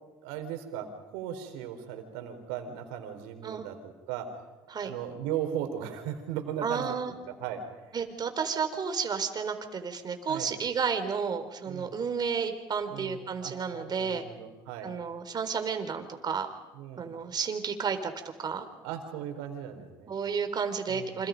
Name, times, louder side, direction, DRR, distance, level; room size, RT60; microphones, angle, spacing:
voice 1, 0.2-4.3 4.8-8.0 10.3-10.5 11.7-12.0 12.9-14.9 16.7-17.1 18.8-20.1 20.9-21.3, right 9 dB, 85° right, 6 dB, 4.3 m, -37 dB
voice 2, 6.6-7.1 7.9-14.2 14.8-16.5 17.0-18.1 18.4-18.7 20.1-21.3, right 6 dB, 45° right, 8 dB, 4.0 m, -32 dB
29.0 x 26.5 x 5.3 m, 1.2 s
supercardioid pair, 75°, 10 cm